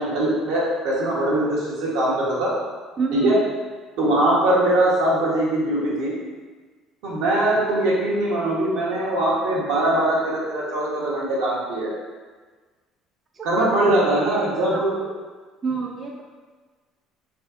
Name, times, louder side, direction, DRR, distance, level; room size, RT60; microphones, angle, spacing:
voice 1, 0.0-2.5 3.1-3.4 4.0-6.1 7.0-12.0 13.4-15.1, right 1 dB, 85° right, -6 dB, 0.9 m, -21 dB
voice 2, 3.0-3.3 13.4-13.9 14.7-14.8 15.6-16.2, right 5 dB, 35° right, -1 dB, 0.3 m, -27 dB
2.7 x 2.6 x 2.4 m, 1.4 s
supercardioid pair, 90°, 0 cm